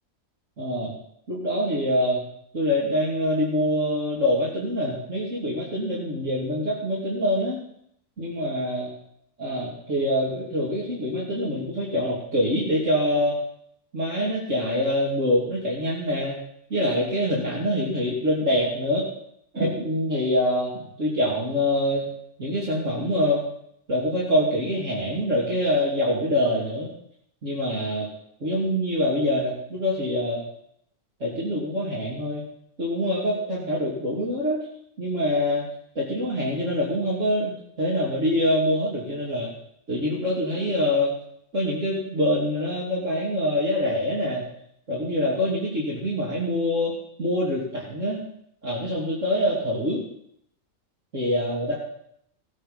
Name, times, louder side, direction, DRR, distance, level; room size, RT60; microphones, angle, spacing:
voice 1, 0.6-0.9 1.3-2.2 2.5-7.6 8.2-8.9 9.4-13.4 13.9-16.4 16.7-19.1 19.5-22.1 22.4-23.4 23.9-26.9 27.4-28.1 28.4-30.4 31.2-32.4 32.8-34.7 35.0-35.6 35.9-39.5 39.9-41.1 41.5-44.4 44.9-46.9 47.2-48.2 48.6-50.0 51.1-51.7, left 1 dB, 65° right, -7 dB, 3.4 m, -25 dB
17.5 x 9.0 x 5.6 m, 0.72 s
omnidirectional pair, 1.4 m